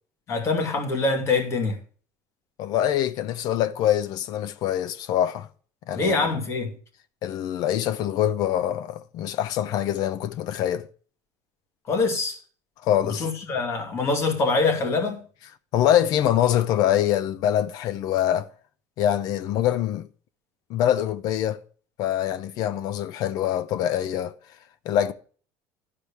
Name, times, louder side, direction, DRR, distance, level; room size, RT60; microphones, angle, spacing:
voice 1, 0.3-1.8 5.9-6.7 11.9-12.4 13.2-15.2, left 3 dB, 35° left, 2.4 m, -24 dB
voice 2, 2.6-5.5 5.9-6.3 7.2-10.9 12.8-13.3 15.7-18.5 19.0-20.1 20.7-21.6 22.0-24.3 24.8-25.1, left 11 dB, 55° left, 0.8 m, -24 dB
12.0 x 5.0 x 6.9 m
cardioid pair, 145°, 8 cm